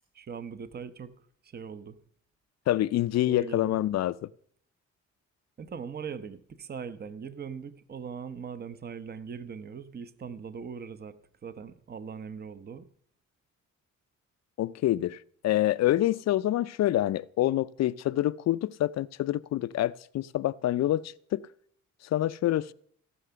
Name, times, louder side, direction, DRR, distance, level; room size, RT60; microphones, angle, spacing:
voice 1, 0.1-1.1 1.4-2.0 3.2-3.8 5.6-12.8, right 6 dB, 35° right, 0.8 m, -40 dB
voice 2, 2.7-4.3 14.6-21.5 22.1-22.7, left 14 dB, 60° left, 0.5 m, -27 dB
16.5 x 5.9 x 6.8 m
cardioid pair, 90°, 30 cm